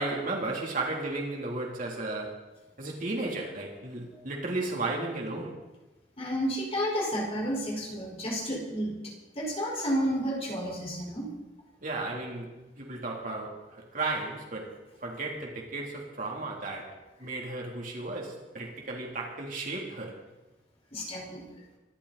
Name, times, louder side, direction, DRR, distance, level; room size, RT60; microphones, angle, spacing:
voice 1, 0.0-5.6 11.8-14.8 15.0-20.2, right 2 dB, 50° right, -1 dB, 3.5 m, -34 dB
voice 2, 6.2-11.3 20.9-21.4, equal, 35° left, -2 dB, 5.3 m, -31 dB
25.0 x 12.5 x 4.3 m, 1.1 s
head